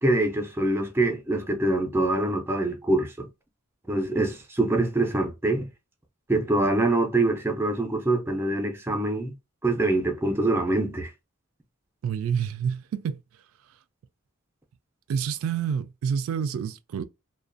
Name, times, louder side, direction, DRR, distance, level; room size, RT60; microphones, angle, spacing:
voice 1, 0.0-3.3 3.9-5.6 6.3-9.3 9.6-11.1, right 2 dB, 10° right, 0.4 m, -24 dB
voice 2, 12.0-13.2 15.1-17.0, right 7 dB, 85° right, 0.3 m, -28 dB
2.4 x 2.2 x 2.4 m
head